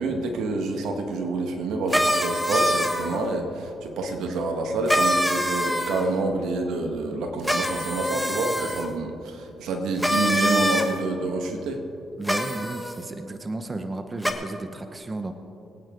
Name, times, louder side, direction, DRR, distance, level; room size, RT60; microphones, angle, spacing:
voice 1, 0.0-11.8, right 3 dB, 80° right, 4 dB, 1.8 m, -27 dB
sound 1, 1.9-3.2 4.9-6.1 7.4-8.9 10.0-10.9 12.2-12.9 14.2-14.3, equal, ahead, 1.3 m, -24 dB
voice 2, 12.2-15.3, right 2 dB, 25° right, 7 dB, 0.9 m, -33 dB
22.5 x 9.4 x 3.9 m, 2.8 s
cardioid pair, 90°, 0 cm